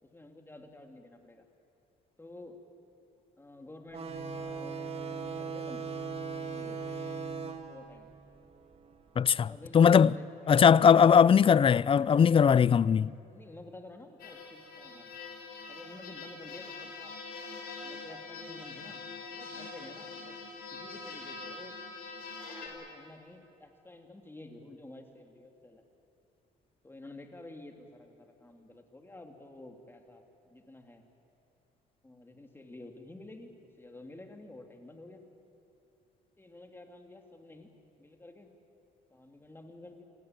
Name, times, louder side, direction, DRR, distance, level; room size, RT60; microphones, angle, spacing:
voice 1, 0.0-1.4 2.2-2.6 3.4-5.8 6.5-6.8 7.7-8.1 9.4-10.6 13.3-15.1 15.7-17.1 17.8-19.0 19.3-20.4 20.7-21.7 22.4-25.8 26.8-31.0 32.0-35.3 36.4-37.7 38.0-38.5 39.1-40.0, left 2 dB, 15° left, 3.0 m, -50 dB
sound 1, 3.9-9.1, right 5 dB, 40° right, 2.4 m, -39 dB
voice 2, 9.2-10.1 10.5-13.1, left 7 dB, 35° left, 0.5 m, -20 dB
cano metáico, 14.2-22.7, left 4 dB, 70° left, 4.8 m, -44 dB
27.0 x 17.5 x 9.1 m
cardioid pair, 90°, 16 cm